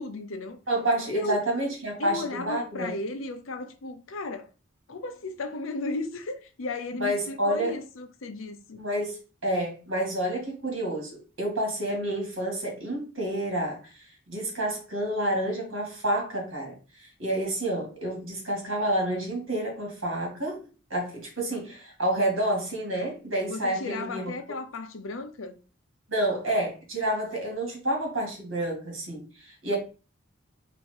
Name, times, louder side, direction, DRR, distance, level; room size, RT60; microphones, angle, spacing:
voice 1, 0.0-0.6 1.1-1.4 2.0-4.5 4.9-8.8 23.5-25.6, left 2 dB, 85° left, 0.7 m, -35 dB
voice 2, 0.7-2.9 7.0-7.7 8.8-24.3 26.1-29.8, right 1 dB, 75° right, 2.3 m, -29 dB
4.2 x 2.7 x 4.7 m
head